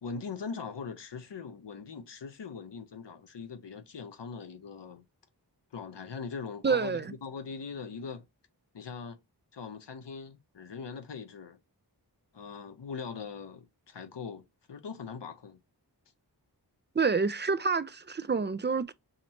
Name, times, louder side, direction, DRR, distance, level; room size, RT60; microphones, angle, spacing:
voice 1, 0.0-5.0 5.7-8.3 8.7-9.2 9.5-11.6 12.3-15.6, left 5 dB, 80° left, 0.7 m, -41 dB
voice 2, 6.6-7.1 17.0-18.9, right 5 dB, 25° right, 0.4 m, -28 dB
2.9 x 2.8 x 4.3 m
wide cardioid pair, 40°, 42 cm